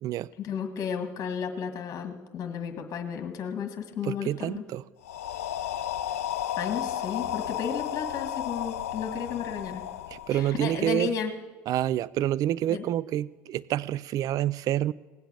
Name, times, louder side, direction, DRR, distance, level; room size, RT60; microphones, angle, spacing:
voice 1, 0.4-4.6 6.6-9.8 10.3-11.3 12.7-12.9, left 7 dB, 45° left, 1.9 m, -33 dB
voice 2, 4.0-4.8 10.1-11.1 11.7-14.9, right 12 dB, 50° right, 0.4 m, -28 dB
sound 1, 5.0-10.9, left 11 dB, 85° left, 0.4 m, -33 dB
18.5 x 8.0 x 8.4 m
hypercardioid pair, 65°, 8 cm